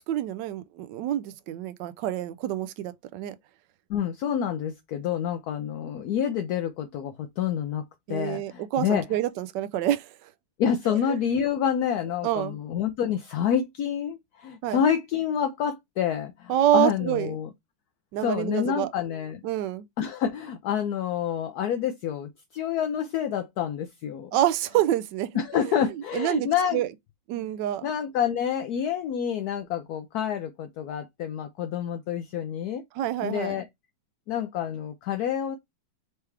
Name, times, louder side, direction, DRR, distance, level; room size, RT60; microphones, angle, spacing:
voice 1, 0.1-3.3 8.1-10.3 10.9-11.2 12.2-12.6 14.6-14.8 16.5-17.4 18.1-18.9 19.4-19.9 24.3-26.9 27.3-27.9 32.9-33.6, right 12 dB, 80° right, 1.2 m, -27 dB
voice 2, 3.9-7.8 8.1-9.0 10.6-17.5 18.2-19.4 20.0-24.3 25.3-26.8 27.8-32.8 33.2-33.7 34.3-35.6, left 8 dB, 70° left, 1.0 m, -28 dB
4.7 x 3.0 x 3.3 m
omnidirectional pair, 1.9 m